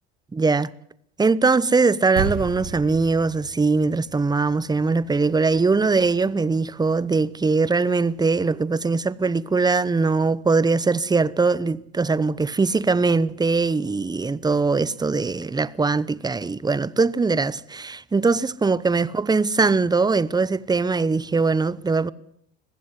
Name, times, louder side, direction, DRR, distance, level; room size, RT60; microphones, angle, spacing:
voice 1, 0.3-0.7 1.2-22.1, right 4 dB, 15° right, 0.9 m, -21 dB
sound 1, 2.2-6.7, right 7 dB, 75° right, 5.1 m, -35 dB
20.5 x 15.5 x 9.9 m
supercardioid pair, 90°, 31 cm